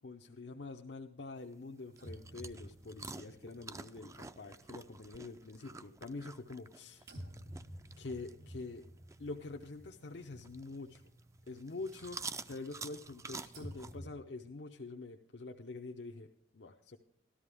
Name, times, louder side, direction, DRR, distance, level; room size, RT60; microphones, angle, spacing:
voice 1, 0.0-7.1 8.0-8.9 9.2-11.0 11.5-16.3 16.5-17.0, left 3 dB, 75° left, 2 dB, 0.7 m, -46 dB
sound 1, 1.3-14.0, right 4 dB, 15° right, 0.4 m, -50 dB
sound 2, 1.9-5.4 5.7-6.7 7.0-14.1, equal, 80° right, 3.0 m, -52 dB
13.5 x 12.5 x 3.5 m, 0.66 s
head